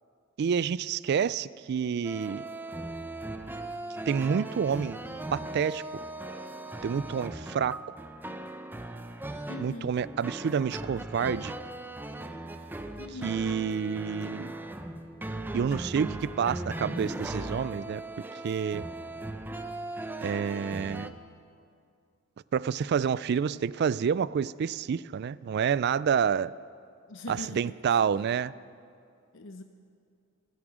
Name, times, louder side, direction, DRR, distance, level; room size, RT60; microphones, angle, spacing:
voice 1, 0.4-2.4 4.1-5.0 5.3-5.8 6.8-7.8 9.6-11.5 13.2-14.5 15.5-18.9 20.2-21.1 22.5-26.5 27.3-28.5, right 7 dB, 50° right, 19 dB, 0.3 m, -28 dB
sound 1, 2.0-21.1, right 2 dB, 10° right, 0.6 m, -38 dB
voice 2, 9.5-10.0 13.0-13.3 27.1-28.0 29.3-29.6, left 2 dB, 65° left, 6 dB, 0.7 m, -42 dB
28.0 x 9.7 x 5.0 m, 2.4 s
head